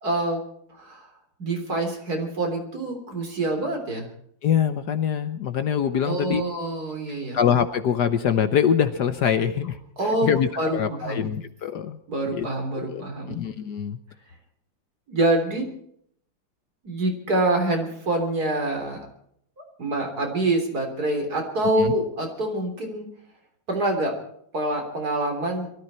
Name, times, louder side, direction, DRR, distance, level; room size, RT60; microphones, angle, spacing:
voice 1, 0.0-0.4 0.7-1.1 1.4-4.1 6.0-7.4 10.0-11.3 12.1-13.4 15.1-15.7 16.8-19.1 19.8-23.0 23.7-24.2 24.5-25.7, right 2 dB, 50° right, 3 dB, 4.1 m, -26 dB
voice 2, 4.4-6.4 7.3-9.8 10.0-12.0 12.3-12.5 12.7-14.0 21.8-21.9, left 8 dB, 65° left, 10 dB, 1.3 m, -24 dB
23.0 x 14.0 x 4.3 m, 0.68 s
omnidirectional pair, 2.2 m